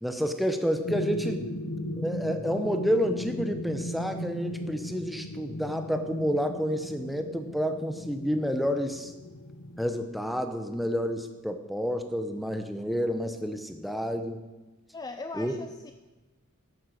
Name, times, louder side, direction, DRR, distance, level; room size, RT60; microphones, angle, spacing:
voice 1, 0.0-1.4 2.0-9.1 9.8-14.4 15.3-15.5, equal, ahead, 7 dB, 0.9 m, -29 dB
sound 1, 0.8-9.9, left 1 dB, 65° left, 1.1 m, -36 dB
voice 2, 14.9-15.9, left 3 dB, 20° left, 7 dB, 0.5 m, -39 dB
11.0 x 8.8 x 6.6 m, 1.1 s
head